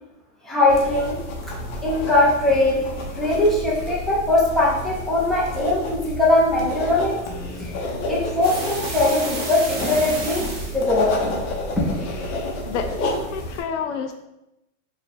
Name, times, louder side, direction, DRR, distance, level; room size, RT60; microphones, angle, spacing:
voice 1, 0.4-1.2 1.8-2.8 3.1-7.1 7.6-7.8 8.1-11.4 11.8-12.0, left 2 dB, ahead, -6 dB, 0.7 m, -20 dB
sound 1, 0.7-13.6, left 1 dB, 45° left, 1.0 m, -30 dB
sound 2, 8.4-10.8, right 2 dB, 25° right, 0.9 m, -32 dB
voice 2, 12.7-14.1, left 6 dB, 60° left, 6 dB, 0.5 m, -29 dB
4.6 x 2.4 x 3.5 m, 0.90 s
supercardioid pair, 140°, 40 cm